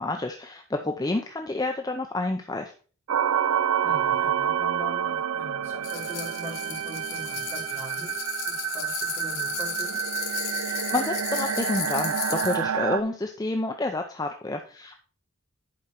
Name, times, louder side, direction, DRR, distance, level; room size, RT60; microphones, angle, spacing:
voice 1, 0.0-2.7 10.6-14.9, left 2 dB, 15° left, 4 dB, 0.5 m, -29 dB
sound 1, 3.1-13.0, right 8 dB, 70° right, 0.4 m, -28 dB
voice 2, 3.8-8.1 8.4-10.0, left 1 dB, 10° right, -3 dB, 3.7 m, -41 dB
sound 2, 5.8-12.6, left 9 dB, 60° left, 1.9 m, -35 dB
10.5 x 5.0 x 4.3 m, 0.40 s
head